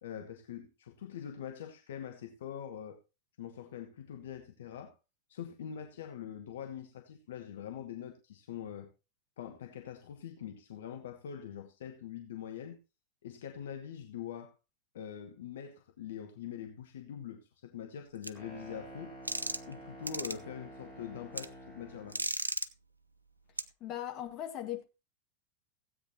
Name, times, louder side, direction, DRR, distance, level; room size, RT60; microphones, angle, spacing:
voice 1, 0.0-3.0 3.4-4.9 5.3-8.9 9.4-12.8 13.2-14.5 14.9-19.1 19.7-22.2, left 9 dB, 60° left, 1.1 m, -44 dB
sound 1, 18.2-18.3 19.3-19.7 20.1-20.3 21.4-21.5 22.1-22.7 23.6-23.7, right 2 dB, 85° right, 0.5 m, -34 dB
sound 2, 18.3-22.3, right 1 dB, ahead, 6.9 m, -49 dB
voice 2, 23.8-24.8, left 11 dB, 35° left, 2.1 m, -38 dB
16.0 x 8.6 x 2.8 m
figure-of-eight pair, 90°, 0 cm